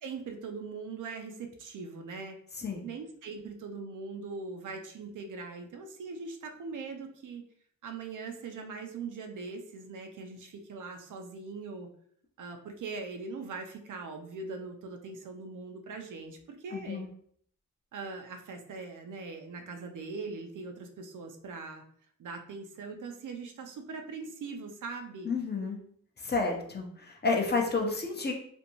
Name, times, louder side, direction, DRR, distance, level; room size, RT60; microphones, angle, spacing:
voice 1, 0.0-2.4 2.8-7.5 7.8-11.9 12.4-17.0 17.9-21.8 22.2-25.3, right 4 dB, 65° right, 4 dB, 0.5 m, -41 dB
voice 2, 16.7-17.1 25.3-25.8 26.2-28.3, left 4 dB, 30° left, 1 dB, 0.6 m, -30 dB
2.5 x 2.2 x 2.9 m, 0.62 s
cardioid pair, 70°, 33 cm